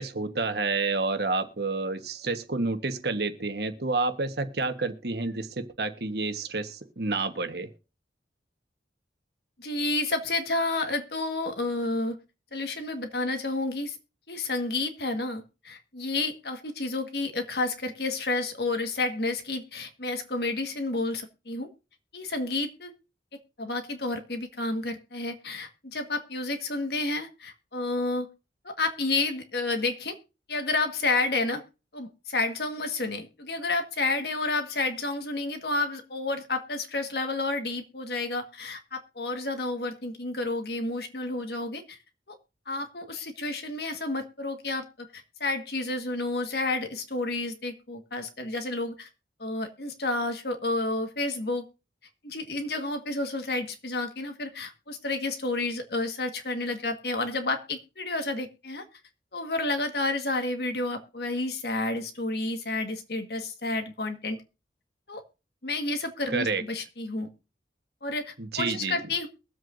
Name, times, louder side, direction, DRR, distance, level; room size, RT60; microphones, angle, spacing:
voice 1, 0.0-7.7 66.3-66.6 68.4-69.0, right 3 dB, 65° right, 1.3 m, -29 dB
voice 2, 9.6-12.2 12.5-14.0 14.3-21.7 22.1-22.9 23.3-28.3 28.6-30.2 30.5-31.6 31.9-42.0 42.3-42.4 42.7-49.1 49.4-51.6 52.2-58.8 59.3-64.4 65.1-65.2 65.6-67.3 68.0-69.3, left 2 dB, 60° left, 1.7 m, -30 dB
22.5 x 7.8 x 2.6 m
head